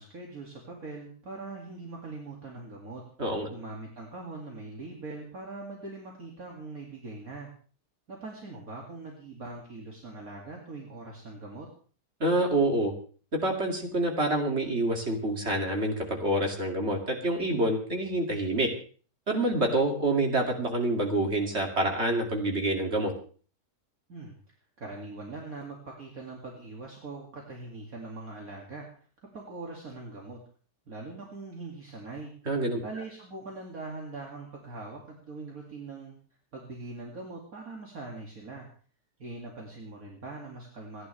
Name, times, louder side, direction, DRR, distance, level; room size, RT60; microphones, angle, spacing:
voice 1, 0.0-3.1 3.5-7.5 8.1-11.7 24.1-24.3 24.8-28.9 29.3-30.4 30.9-32.3 32.8-36.1 36.5-38.7 39.2-41.1, right 3 dB, 60° right, -1 dB, 2.8 m, -42 dB
voice 2, 12.2-12.9 13.3-18.7 19.3-23.1 32.5-32.8, right 1 dB, 40° right, 2 dB, 2.8 m, -27 dB
27.0 x 11.0 x 3.4 m, 0.41 s
omnidirectional pair, 1.7 m